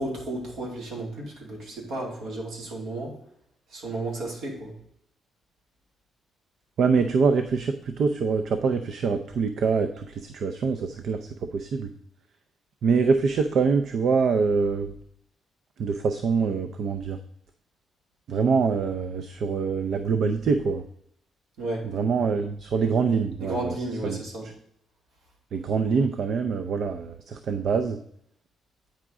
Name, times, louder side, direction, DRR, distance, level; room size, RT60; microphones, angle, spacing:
voice 1, 0.0-3.1 3.7-4.7 21.6-21.9 23.4-24.5, right 2 dB, 80° right, -1 dB, 2.5 m, -33 dB
voice 2, 6.8-11.9 12.8-14.9 15.8-17.2 18.3-20.8 21.8-23.7 24.0-24.2 25.5-28.0, right 5 dB, 65° right, 8 dB, 0.5 m, -24 dB
9.0 x 4.9 x 3.7 m, 0.70 s
cardioid pair, 90°, 0 cm